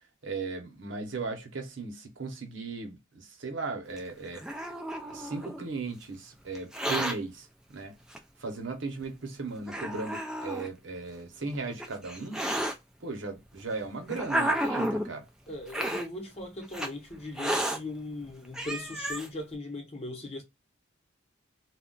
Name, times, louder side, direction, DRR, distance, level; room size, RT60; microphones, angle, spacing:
voice 1, 0.2-4.4 5.1-7.9 8.4-12.4 13.0-15.2, right 3 dB, 70° right, 0.8 m, -37 dB
Hiss, 4.0-5.6 6.6-7.2 8.1-8.2 9.0-9.1 9.7-10.7 11.5-12.7 13.6-15.1 15.7-16.1 16.7-16.9 17.4-17.8 18.3-18.4 18.5-19.3, right 1 dB, 5° right, 0.3 m, -31 dB
voice 2, 15.5-20.4, left 2 dB, 30° left, 0.9 m, -39 dB
2.4 x 2.1 x 3.7 m
head